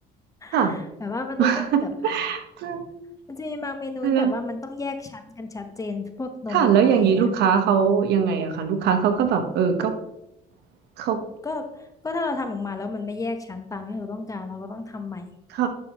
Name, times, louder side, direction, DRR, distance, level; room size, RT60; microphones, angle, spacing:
voice 1, 0.4-1.9 3.3-7.3 11.4-15.3, left 3 dB, 20° left, 7 dB, 1.0 m, -32 dB
voice 2, 1.4-2.8 4.0-4.3 6.5-9.9 11.0-11.2 15.5-15.7, right 7 dB, 75° right, 7 dB, 1.1 m, -21 dB
11.0 x 5.8 x 3.0 m, 0.85 s
cardioid pair, 110°, 17 cm